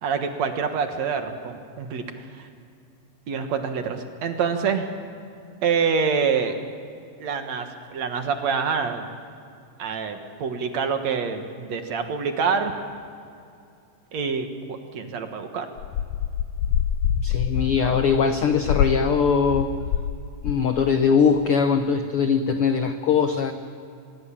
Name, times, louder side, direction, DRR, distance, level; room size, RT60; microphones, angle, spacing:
voice 1, 0.0-2.5 3.3-4.9 5.6-6.5 7.2-9.1 9.8-12.7 14.1-15.7 17.8-18.0, right 6 dB, 60° right, 6 dB, 2.5 m, -26 dB
sound 1, 15.8-20.1 20.4-20.8, left 8 dB, 70° left, 1.9 m, -25 dB
voice 2, 17.2-19.7 20.4-23.5, left 6 dB, 90° left, 8 dB, 1.2 m, -21 dB
25.0 x 22.0 x 7.4 m, 2.4 s
omnidirectional pair, 3.8 m